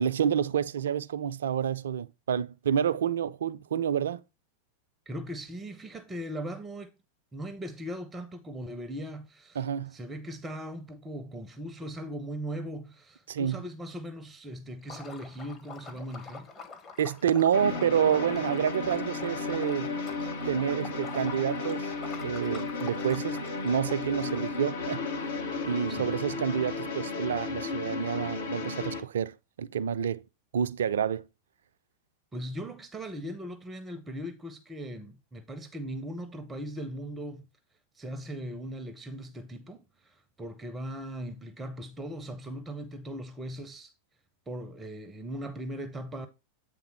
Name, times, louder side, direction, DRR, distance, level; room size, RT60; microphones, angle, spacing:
voice 1, 0.0-4.2 9.6-9.9 13.3-13.6 17.0-19.9 20.5-21.9 22.2-25.1 25.7-30.2 30.5-31.3, right 8 dB, 65° right, 0.3 m, -28 dB
voice 2, 5.1-6.9 7.3-16.5 25.9-26.1 32.3-37.4 37.9-43.9 44.5-46.3, equal, 15° right, 0.6 m, -39 dB
Liquid, 14.8-24.7, left 4 dB, 30° left, 1.3 m, -47 dB
sound 1, 17.5-29.0, left 4 dB, 60° left, 1.0 m, -34 dB
8.1 x 3.5 x 4.6 m
figure-of-eight pair, 90°, 0 cm